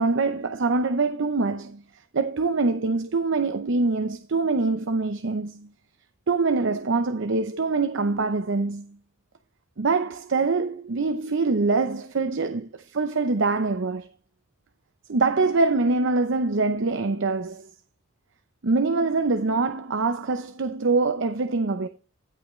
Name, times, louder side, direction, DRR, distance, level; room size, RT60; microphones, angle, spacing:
voice 1, 0.0-1.8 2.1-5.7 6.3-9.0 9.8-14.1 15.1-17.7 18.6-21.9, right 3 dB, 65° right, 0.7 m, -24 dB
17.0 x 5.7 x 3.1 m
head